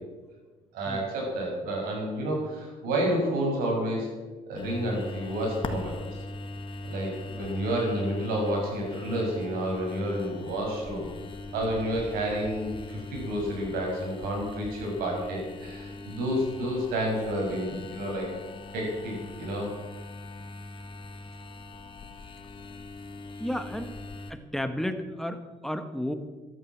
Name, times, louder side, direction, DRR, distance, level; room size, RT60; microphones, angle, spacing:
voice 1, 0.7-4.1 4.5-6.0 6.8-11.1 11.5-18.3 18.7-19.7, right 1 dB, 90° right, 0 dB, 6.4 m, -30 dB
sound 1, 4.6-24.3, left 2 dB, 35° left, 1.6 m, -40 dB
voice 2, 23.4-23.9 24.3-26.1, left 1 dB, ahead, 8 dB, 1.5 m, -32 dB
14.0 x 11.0 x 7.5 m, 1.3 s
cardioid pair, 95°, 15 cm